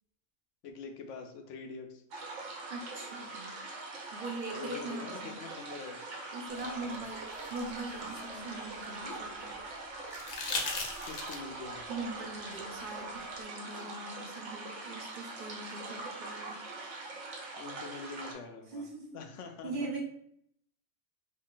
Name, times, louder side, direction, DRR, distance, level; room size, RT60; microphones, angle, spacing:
voice 1, 0.6-2.0 4.5-6.0 6.5-7.0 11.0-11.8 17.6-18.8 19.1-19.9, left 4 dB, 85° left, 4 dB, 1.0 m, -45 dB
sound 1, 2.1-18.3, right 3 dB, 80° right, 1.2 m, -42 dB
voice 2, 2.7-3.6 4.1-5.4 6.3-9.6 11.9-16.6 18.7-19.1 19.6-20.0, right 2 dB, 55° right, 0 dB, 0.7 m, -41 dB
sound 2, 6.9-9.2 10.1-11.6 13.3-13.4, left 3 dB, 60° left, 0.8 m, -39 dB
3.1 x 2.6 x 3.6 m, 0.71 s
omnidirectional pair, 1.2 m